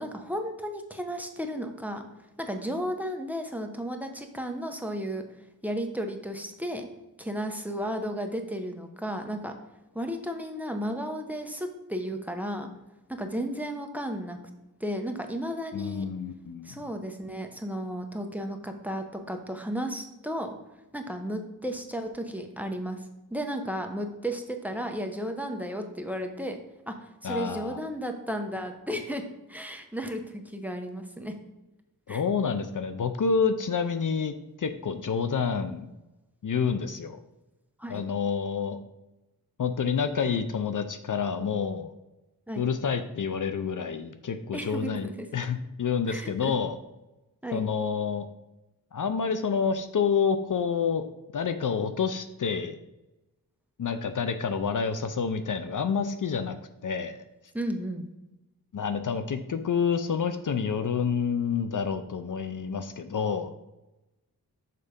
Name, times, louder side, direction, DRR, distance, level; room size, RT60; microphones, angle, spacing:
voice 1, 0.0-2.0 2.4-5.2 5.6-6.9 7.2-9.5 9.9-12.7 13.1-14.4 14.8-16.1 16.6-20.6 20.9-23.0 23.3-26.6 26.9-29.2 29.5-31.3 32.1-32.2 37.8-38.0 42.5-42.6 44.5-45.3 46.1-46.5 47.4-47.7 57.5-58.1, equal, 5° right, 5 dB, 0.8 m, -34 dB
voice 2, 15.7-16.7 27.2-27.8 32.1-35.9 36.4-37.2 37.9-38.8 39.6-41.9 42.6-46.8 47.5-48.3 48.9-51.0 51.3-52.8 53.8-56.6 56.8-57.2 58.7-63.5, left 6 dB, 60° left, 9 dB, 0.6 m, -28 dB
6.7 x 4.1 x 5.1 m, 0.99 s
wide cardioid pair, 90°, 35 cm